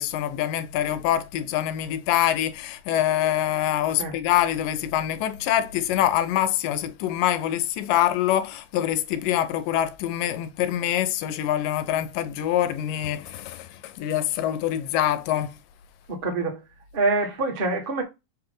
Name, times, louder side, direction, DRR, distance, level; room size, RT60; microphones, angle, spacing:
voice 1, 0.0-15.5, left 12 dB, 85° left, 2.4 m, -25 dB
voice 2, 16.1-16.6 16.9-18.0, right 3 dB, 30° right, 0.9 m, -25 dB
7.5 x 3.4 x 3.8 m
omnidirectional pair, 3.8 m